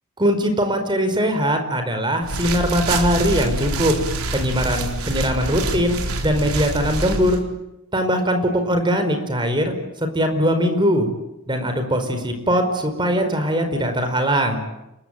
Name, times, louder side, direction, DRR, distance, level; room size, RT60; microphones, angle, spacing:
voice 1, 0.2-3.9 4.3-7.4 7.9-9.7 10.0-11.1 11.5-14.6, equal, 20° right, 6 dB, 5.1 m, -21 dB
sound 1, 2.2-7.4, right 2 dB, 80° right, 4.4 m, -26 dB
29.5 x 21.5 x 9.2 m, 0.90 s
head